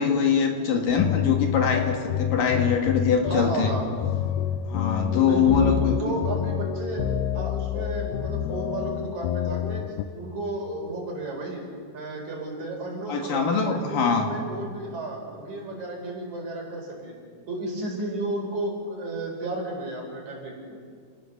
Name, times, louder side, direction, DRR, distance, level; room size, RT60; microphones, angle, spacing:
voice 1, 0.0-3.7 4.7-6.1 13.1-14.3, left 6 dB, 65° left, 3 dB, 3.1 m, -23 dB
sound 1, 0.9-10.0, left 10 dB, 85° left, 2.7 m, -28 dB
voice 2, 3.3-3.8 5.2-7.1 7.3-9.8 10.1-11.6 11.9-17.2 17.5-20.8, right 2 dB, 50° right, 0 dB, 5.7 m, -33 dB
29.5 x 18.5 x 6.9 m, 2.1 s
omnidirectional pair, 4.5 m